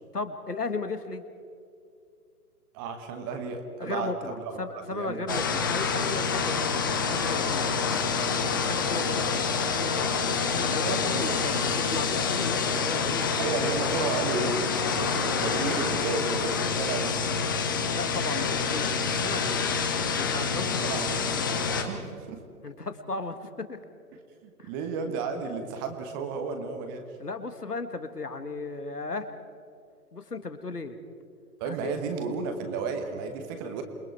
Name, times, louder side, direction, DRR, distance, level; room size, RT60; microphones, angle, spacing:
voice 1, 0.1-1.2 3.8-6.8 7.1-7.9 8.4-10.1 10.5-13.5 17.9-19.6 20.1-20.8 22.6-23.8 24.6-24.7 27.2-29.3 30.1-31.0 31.6-31.9, left 3 dB, 80° left, 9 dB, 2.0 m, -35 dB
voice 2, 2.7-4.5 4.9-5.5 10.9-11.4 13.4-14.6 14.9-17.2 20.8-21.2 21.7-22.4 24.4-27.0 31.6-33.8, right 5 dB, 15° right, 6 dB, 1.1 m, -33 dB
sound 1, 5.3-21.8, left 5 dB, 15° left, 0.7 m, -27 dB
28.0 x 22.0 x 4.7 m, 2.3 s
figure-of-eight pair, 135°, 46 cm